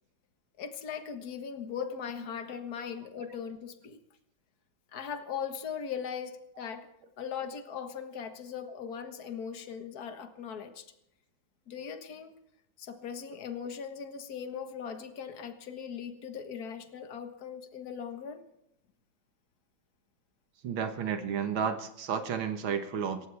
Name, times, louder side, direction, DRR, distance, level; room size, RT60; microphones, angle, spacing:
voice 1, 0.6-4.0 4.9-6.9 7.2-10.9 11.7-12.3 12.8-18.4, left 7 dB, 50° left, 7 dB, 1.9 m, -39 dB
voice 2, 20.6-23.3, right 7 dB, 90° right, 7 dB, 2.2 m, -32 dB
28.0 x 15.0 x 3.5 m, 0.80 s
omnidirectional pair, 2.1 m